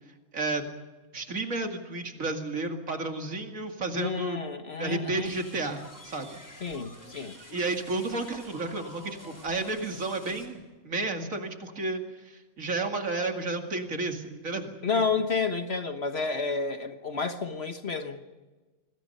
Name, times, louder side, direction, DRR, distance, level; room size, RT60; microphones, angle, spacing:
voice 1, 1.1-4.4 4.8-6.4 7.5-15.0, right 3 dB, 65° right, 2.7 m, -32 dB
voice 2, 3.9-5.3 6.6-7.4 14.8-18.2, left 4 dB, 45° left, 1.6 m, -30 dB
sound 1, 5.2-10.5, equal, 10° left, 4.4 m, -48 dB
27.0 x 21.0 x 5.5 m
omnidirectional pair, 1.5 m